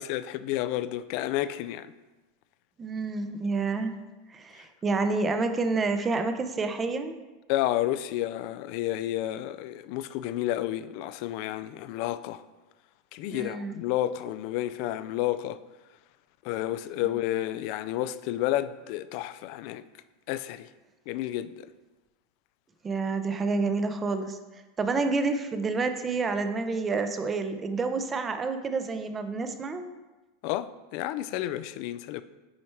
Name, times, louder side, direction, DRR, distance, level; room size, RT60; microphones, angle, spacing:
voice 1, 0.0-1.9 7.5-12.4 13.1-15.6 16.4-19.8 20.3-20.7 21.1-21.7 30.4-32.2, left 13 dB, 60° left, 0.3 m, -31 dB
voice 2, 2.8-4.0 4.3-7.2 13.3-13.7 17.0-17.1 22.8-24.4 24.8-29.9, right 3 dB, 20° right, 0.6 m, -29 dB
6.3 x 4.3 x 4.5 m
supercardioid pair, 120°, 0 cm